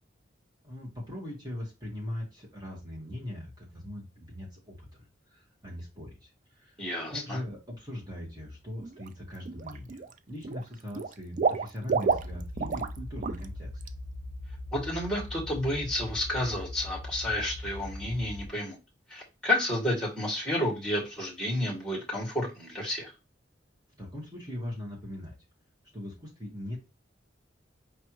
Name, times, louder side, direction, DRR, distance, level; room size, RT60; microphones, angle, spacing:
voice 1, 0.6-10.0 10.3-13.7 24.0-25.3 25.9-26.9, left 1 dB, 20° right, -3 dB, 1.6 m, -40 dB
voice 2, 6.8-7.4 14.7-18.8 19.1-23.1, left 1 dB, 5° left, -2 dB, 2.0 m, -31 dB
Water / Liquid, 8.8-9.1 9.4-10.1 10.4-13.0 13.2-13.4 13.8-13.9, right 5 dB, 45° right, 0.3 m, -30 dB
sound 1, 12.1-18.5, left 1 dB, 35° left, 0.9 m, -40 dB
5.2 x 3.3 x 3.1 m, 0.27 s
head